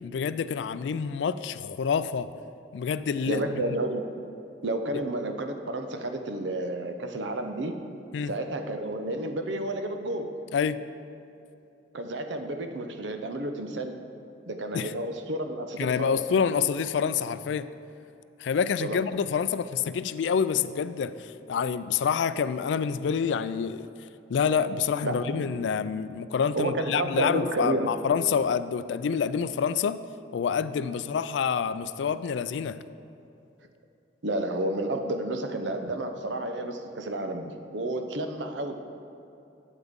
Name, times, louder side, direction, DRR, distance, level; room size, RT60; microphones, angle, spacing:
voice 1, 0.0-2.3 2.7-3.4 3.7-3.8 8.1-8.3 10.5-10.8 14.7-14.9 15.8-17.7 18.4-23.9 24.3-30.0 30.3-32.8, left 6 dB, 75° left, 14 dB, 0.3 m, -27 dB
voice 2, 3.3-4.0 4.6-7.8 8.3-10.3 11.9-14.0 14.5-16.2 18.8-19.0 25.0-25.6 26.5-28.1 34.2-38.8, right 1 dB, 80° right, 6 dB, 0.7 m, -31 dB
12.0 x 8.2 x 3.6 m, 2.7 s
head